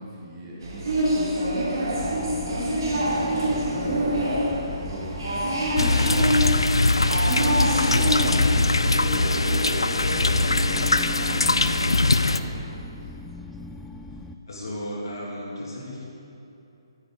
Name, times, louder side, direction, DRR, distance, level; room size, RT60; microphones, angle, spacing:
voice 1, 0.0-3.1 3.4-6.3 7.2-13.1, right 1 dB, 30° right, -6 dB, 1.8 m, -40 dB
sound 1, 0.6-12.4, equal, 55° right, 2.4 m, -27 dB
sound 2, 1.9-14.4, left 2 dB, 5° left, 0.4 m, -39 dB
sound 3, 5.8-12.4, left 2 dB, 75° left, 0.4 m, -22 dB
voice 2, 14.5-16.0, equal, 60° left, -4 dB, 2.1 m, -34 dB
12.5 x 9.3 x 3.8 m, 2.8 s
figure-of-eight pair, 135°, 3 cm